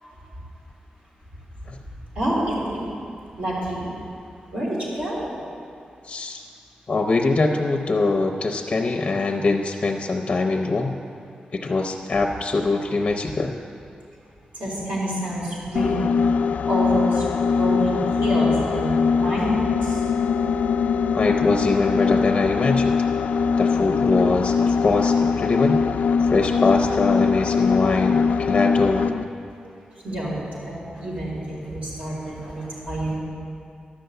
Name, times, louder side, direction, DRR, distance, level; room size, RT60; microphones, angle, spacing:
voice 1, 2.2-2.8 3.4-3.9 4.5-5.3 14.6-16.1 16.7-19.6 30.0-33.1, right 1 dB, 55° right, -6 dB, 3.6 m, -27 dB
voice 2, 6.1-6.4 6.9-10.9 11.5-13.5 21.1-22.9 23.6-25.8 26.3-29.1, left 3 dB, 35° left, 3 dB, 0.6 m, -22 dB
sound 1, 15.8-29.3, left 5 dB, 70° left, 0.3 m, -22 dB
11.5 x 6.7 x 7.9 m, 2.4 s
wide cardioid pair, 170°, 3 cm